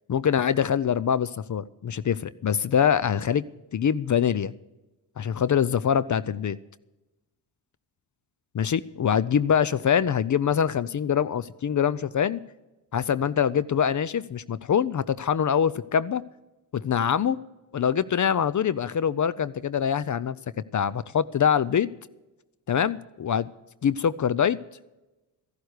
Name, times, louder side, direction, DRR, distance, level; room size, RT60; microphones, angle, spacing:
voice 1, 0.1-3.4 3.7-4.5 5.2-6.6 8.5-12.4 12.9-16.2 16.7-17.4 17.7-20.4 20.7-21.9 22.7-23.5 23.8-24.6, left 8 dB, 40° left, 19 dB, 0.6 m, -24 dB
14.0 x 11.5 x 6.5 m, 1.0 s
cardioid pair, 65°, 47 cm